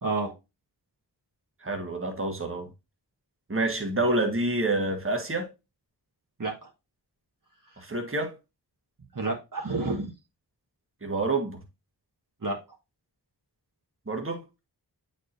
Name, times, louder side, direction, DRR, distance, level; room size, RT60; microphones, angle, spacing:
voice 1, 0.0-0.3 6.4-6.7 9.1-10.1 12.4-12.6, right 3 dB, 50° right, 1.3 m, -29 dB
voice 2, 1.6-2.7 3.5-5.5 7.8-8.3 11.0-11.6 14.1-14.4, right 2 dB, 30° right, 1.4 m, -28 dB
8.2 x 4.5 x 2.6 m
wide cardioid pair, 50°, 41 cm